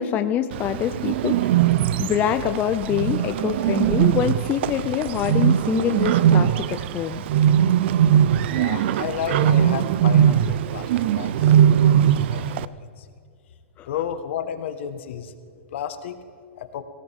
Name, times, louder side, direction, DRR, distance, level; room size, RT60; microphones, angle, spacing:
voice 1, 0.0-1.7 2.0-7.2 13.8-13.9, left 10 dB, 25° left, 8 dB, 0.5 m, -25 dB
Bird, 0.5-12.7, right 10 dB, 55° right, 0.5 m, -20 dB
voice 2, 8.4-13.1 13.9-15.3 15.7-16.2 16.6-16.8, left 9 dB, 60° left, 9 dB, 1.4 m, -32 dB
18.5 x 18.0 x 3.6 m, 2.2 s
hypercardioid pair, 140°, 7 cm